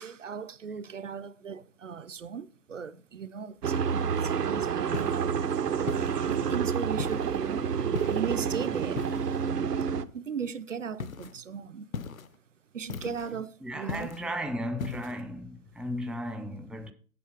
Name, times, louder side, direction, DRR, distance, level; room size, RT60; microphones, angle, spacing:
voice 1, 0.0-5.9 6.2-7.7 8.0-9.0 10.1-11.9 12.7-14.1, right 7 dB, 55° right, 0.5 m, -37 dB
sound 1, 3.6-10.1, right 7 dB, 80° right, 0.9 m, -29 dB
sound 2, 4.9-5.3 5.9-6.4 7.0-7.4 8.0-8.4 9.0-9.5 11.0-11.4 11.9-12.4 12.9-13.4 13.9-14.3 14.8-15.2, left 6 dB, 60° left, 0.7 m, -38 dB
voice 2, 13.6-16.9, equal, ahead, 0.3 m, -35 dB
8.3 x 6.9 x 4.8 m
hypercardioid pair, 170°, 47 cm